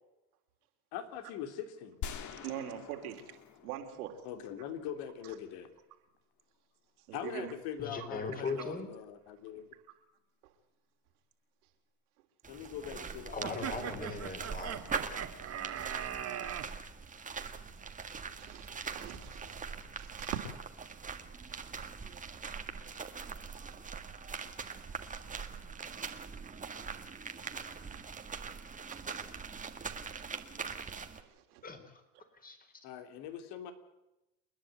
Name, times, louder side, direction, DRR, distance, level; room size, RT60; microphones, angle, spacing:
voice 1, 0.9-2.0 4.2-5.7 7.1-9.7 12.5-14.1 32.8-33.7, left 9 dB, 60° left, 9 dB, 3.2 m, -42 dB
sound 1, 2.0-4.9, left 8 dB, 40° left, 2.0 m, -45 dB
voice 2, 2.4-3.4 3.6-4.3 5.2-5.3 7.0-7.5 8.4-8.5 10.4-10.5 12.6-12.7 18.4-19.6 20.0-20.4 27.9-28.0 28.9-29.0 30.9-31.6, right 12 dB, 80° right, 5 dB, 3.6 m, -43 dB
voice 3, 7.8-8.9 13.3-14.8 31.6-32.0 32.4-32.6, left 3 dB, 20° left, 7 dB, 4.3 m, -39 dB
sound 2, 12.4-31.2, right 5 dB, 15° right, 1.9 m, -42 dB
sound 3, 13.4-16.7, right 9 dB, 35° right, 2.3 m, -39 dB
29.0 x 10.5 x 9.3 m, 0.96 s
supercardioid pair, 110°, 45 cm